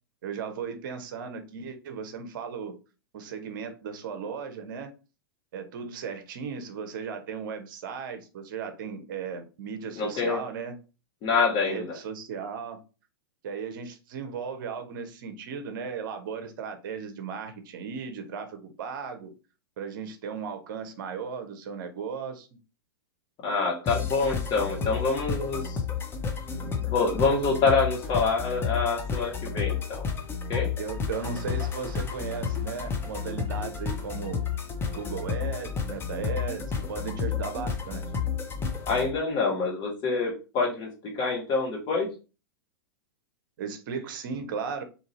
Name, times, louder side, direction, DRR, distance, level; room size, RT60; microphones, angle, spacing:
voice 1, 0.2-2.8 3.1-4.9 5.5-10.7 11.7-12.8 13.4-19.3 19.8-22.5 30.8-34.4 34.9-38.0 43.6-44.8, right 6 dB, 55° right, 0.7 m, -36 dB
voice 2, 10.0-10.4 11.2-11.9 23.4-25.8 26.6-30.0 30.5-30.7 38.9-42.1, left 4 dB, 35° left, 1.3 m, -26 dB
sound 1, 23.9-39.1, left 6 dB, 20° left, 0.6 m, -31 dB
2.8 x 2.6 x 4.0 m
hypercardioid pair, 105°, 13 cm